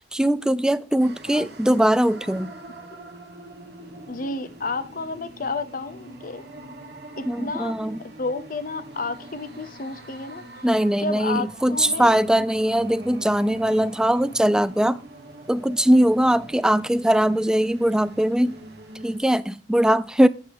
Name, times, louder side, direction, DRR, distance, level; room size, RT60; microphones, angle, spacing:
voice 1, 0.1-2.5 7.3-8.0 10.6-15.0 15.5-18.6 19.0-20.3, right 1 dB, 5° right, 0.3 m, -21 dB
sound 1, 1.0-19.2, right 1 dB, 60° right, 1.3 m, -43 dB
voice 2, 4.1-6.4 7.2-10.7 11.0-12.2, left 3 dB, 50° left, 0.7 m, -31 dB
9.9 x 7.6 x 3.4 m
head